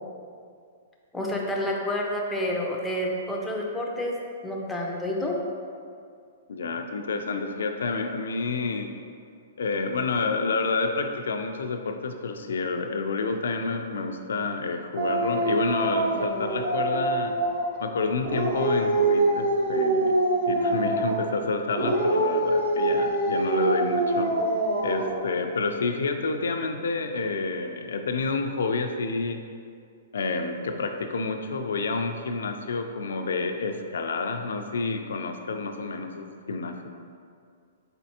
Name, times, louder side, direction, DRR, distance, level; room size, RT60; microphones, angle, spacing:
voice 1, 1.1-4.1 4.4-5.4, left 1 dB, 5° left, -2 dB, 0.4 m, -29 dB
voice 2, 6.5-8.9 9.6-17.3 17.8-20.1 20.5-24.3 24.8-29.4 30.1-36.8, left 3 dB, 90° left, 6 dB, 0.4 m, -29 dB
Dog, 15.0-17.8 18.2-21.3 21.7-25.3, right 2 dB, 55° right, 0.8 m, -25 dB
4.2 x 4.0 x 2.8 m, 2.3 s
hypercardioid pair, 165°, 0 cm